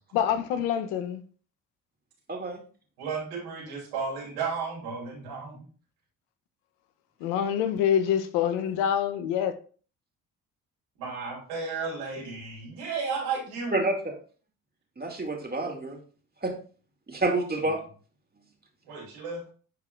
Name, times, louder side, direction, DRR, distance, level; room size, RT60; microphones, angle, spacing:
voice 1, 0.1-1.2 7.2-9.5, left 9 dB, 80° left, 0.9 m, -26 dB
voice 2, 2.3-2.6 13.7-14.0 15.0-16.0 16.4-16.5 17.1-17.8, right 2 dB, 25° right, 2.4 m, -28 dB
voice 3, 3.0-5.7 11.0-13.8 18.9-19.4, right 5 dB, 85° right, 3.0 m, -33 dB
10.5 x 4.6 x 2.5 m
hypercardioid pair, 50°, 41 cm